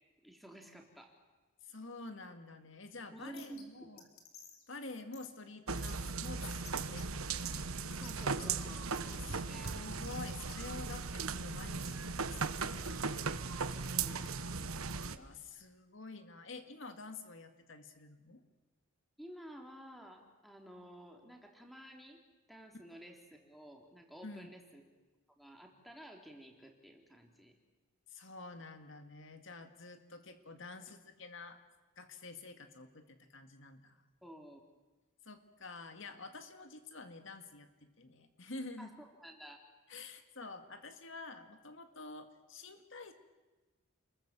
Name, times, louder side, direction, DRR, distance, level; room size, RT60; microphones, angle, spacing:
voice 1, 0.2-1.2 3.1-4.1 8.0-9.7 13.9-14.2 19.2-22.2 22.5-24.9 25.4-27.5 34.2-34.6 38.8-39.6, right 1 dB, ahead, 2 dB, 3.3 m, -52 dB
voice 2, 1.6-4.0 4.7-7.9 9.2-13.2 15.0-18.4 24.2-24.5 28.1-31.6 32.0-34.0 35.2-38.9 39.9-43.1, left 3 dB, 60° left, 7 dB, 2.1 m, -49 dB
sound 1, 3.4-3.6 4.0-4.6 5.1-5.3 5.8-6.0 6.4-7.0 7.5-7.6 7.9-9.1 9.6-10.6 10.9-11.0 11.8-11.9 12.3-12.5 12.7-13.1 13.7-14.3, left 8 dB, 85° left, 4.3 m, -54 dB
sound 2, 5.7-15.2, right 4 dB, 90° right, 1.3 m, -38 dB
30.0 x 22.0 x 7.5 m, 1.2 s
head